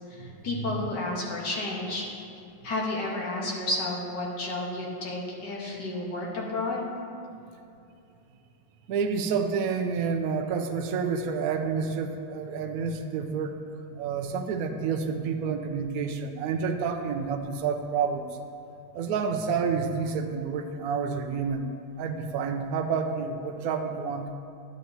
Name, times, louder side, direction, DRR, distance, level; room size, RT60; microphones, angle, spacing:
voice 1, 0.1-2.1 2.6-6.9, left 2 dB, 55° left, -3 dB, 2.0 m, -31 dB
voice 2, 8.9-13.6 13.9-18.4 18.9-21.7 22.0-24.3, right 5 dB, 85° right, 6 dB, 0.7 m, -29 dB
11.0 x 10.5 x 2.8 m, 2.6 s
omnidirectional pair, 2.3 m